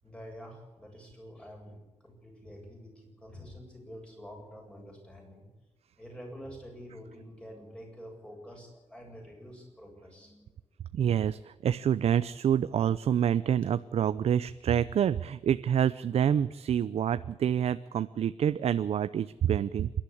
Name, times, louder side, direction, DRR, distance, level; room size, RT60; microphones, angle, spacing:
voice 1, 0.0-5.5 6.0-10.5, equal, 10° left, 0 dB, 7.9 m, -47 dB
voice 2, 10.9-19.9, right 9 dB, 70° right, 13 dB, 0.6 m, -27 dB
27.5 x 12.0 x 8.6 m, 1.1 s
wide cardioid pair, 140°, 11 cm